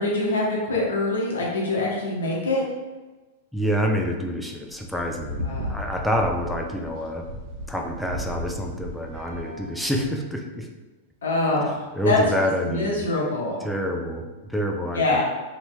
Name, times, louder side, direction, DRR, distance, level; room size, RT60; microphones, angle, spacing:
voice 1, 0.0-2.6 5.4-5.8 11.2-12.2 12.6-13.6 14.9-15.2, left 2 dB, 75° left, -4 dB, 0.9 m, -24 dB
voice 2, 3.5-7.2 7.7-10.7 11.9-13.1 13.6-15.2, equal, ahead, 1 dB, 0.4 m, -27 dB
sound 1, 4.6-10.1, equal, 45° right, 0.9 m, -35 dB
3.0 x 2.7 x 2.2 m, 1.2 s
hypercardioid pair, 100°, 0 cm